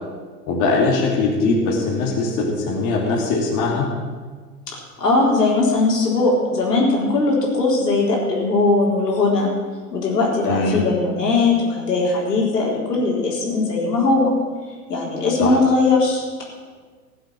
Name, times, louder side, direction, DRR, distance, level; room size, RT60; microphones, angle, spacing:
voice 1, 0.5-3.9 10.4-10.8 15.4-15.6, left 3 dB, 40° left, -2 dB, 2.8 m, -21 dB
voice 2, 5.0-9.5 9.9-14.3 14.9-16.4, left 3 dB, 80° left, -2 dB, 4.0 m, -19 dB
16.0 x 7.7 x 7.3 m, 1.5 s
figure-of-eight pair, 100°, 48 cm